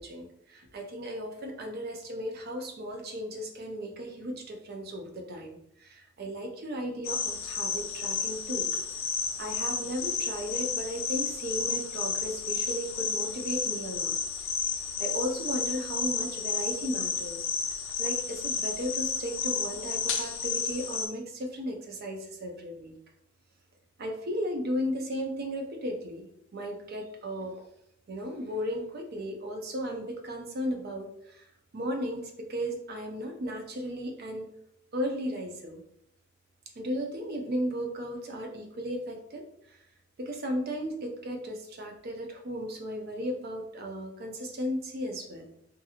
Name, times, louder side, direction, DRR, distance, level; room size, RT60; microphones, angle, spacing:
voice 1, 0.0-8.7 9.4-14.2 15.0-17.5 18.0-22.9 24.0-27.6 28.1-31.5 31.7-34.5 34.9-35.8 36.7-39.8 40.2-45.5, equal, 50° right, 3 dB, 0.5 m, -35 dB
sound 1, 7.0-21.1, left 6 dB, 75° left, 0.4 m, -32 dB
2.8 x 2.6 x 2.4 m, 0.74 s
head